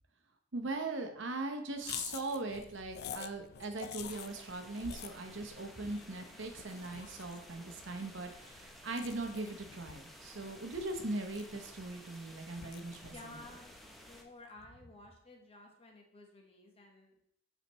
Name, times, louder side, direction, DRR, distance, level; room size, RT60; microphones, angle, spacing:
voice 1, 0.5-13.4, right 2 dB, 70° right, 5 dB, 0.9 m, -40 dB
sound 1, 1.8-14.3, left 9 dB, 55° left, 0.3 m, -49 dB
sound 2, 4.1-14.2, equal, ahead, 0.6 m, -55 dB
voice 2, 13.1-17.2, left 2 dB, 30° left, 2 dB, 1.1 m, -54 dB
7.9 x 4.1 x 3.1 m, 0.75 s
head